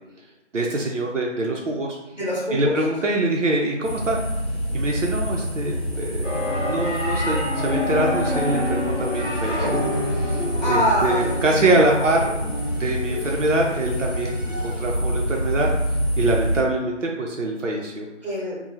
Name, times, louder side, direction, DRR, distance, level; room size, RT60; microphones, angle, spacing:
voice 1, 0.5-2.0 2.5-4.2 4.7-9.8 10.1-12.3 12.8-15.7 16.2-18.1, right 2 dB, 90° right, -1 dB, 0.6 m, -24 dB
voice 2, 2.1-2.8 10.6-12.7 18.2-18.5, equal, 35° left, -8 dB, 1.2 m, -26 dB
sound 1, 3.8-16.6, equal, 40° right, 0.7 m, -27 dB
sound 2, 6.2-11.0, left 2 dB, 65° left, 1.0 m, -27 dB
sound 3, 9.0-15.1, equal, 80° left, 0.6 m, -36 dB
2.9 x 2.1 x 2.7 m, 0.98 s
figure-of-eight pair, 180°, 36 cm